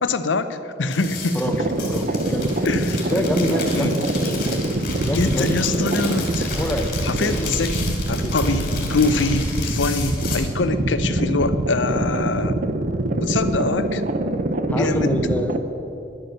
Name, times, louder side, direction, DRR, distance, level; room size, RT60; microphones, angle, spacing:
voice 1, 0.0-1.4 2.6-3.0 3.7-4.0 5.1-6.5 7.0-12.6 13.2-14.0 14.7-15.2, left 3 dB, 80° left, 11 dB, 0.7 m, -24 dB
sound 1, 0.8-10.4, left 4 dB, 50° left, 2.7 m, -33 dB
voice 2, 1.3-2.7 3.1-4.3 5.0-5.5 6.5-6.9 7.2-7.7 8.2-8.6 14.6-15.6, equal, 10° left, 4 dB, 0.9 m, -26 dB
sound 2, 1.4-15.6, right 1 dB, 45° right, 0.6 m, -24 dB
11.5 x 8.8 x 6.7 m, 3.0 s
head